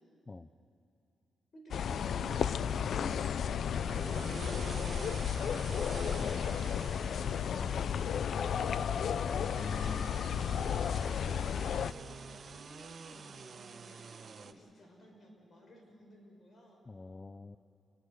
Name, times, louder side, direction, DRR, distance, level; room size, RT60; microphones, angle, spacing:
voice 1, 1.5-9.1 10.6-11.1 11.8-16.8, equal, 50° left, 2 dB, 5.9 m, -55 dB
sound 1, 1.7-11.9, left 8 dB, 65° left, 0.5 m, -33 dB
sound 2, 3.3-14.5, right 5 dB, 50° right, 1.1 m, -48 dB
voice 2, 9.3-10.3 16.9-17.6, left 3 dB, 25° left, 11 dB, 0.6 m, -45 dB
29.5 x 20.5 x 6.7 m, 2.7 s
cardioid pair, 95°, 0 cm